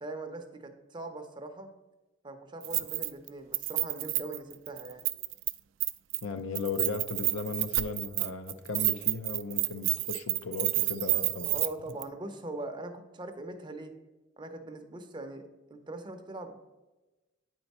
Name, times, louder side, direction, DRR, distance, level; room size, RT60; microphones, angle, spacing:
voice 1, 0.0-1.7 2.2-5.1 11.5-13.9 14.4-16.6, right 2 dB, 25° right, 6 dB, 0.6 m, -41 dB
Keys jangling, 2.6-3.3 3.5-5.5 5.8-6.2 6.5-11.7 12.0-12.1, right 19 dB, 75° right, 0.3 m, -29 dB
voice 2, 6.2-11.5, left 4 dB, 85° left, 10 dB, 0.5 m, -36 dB
8.9 x 4.5 x 4.1 m, 1.1 s
head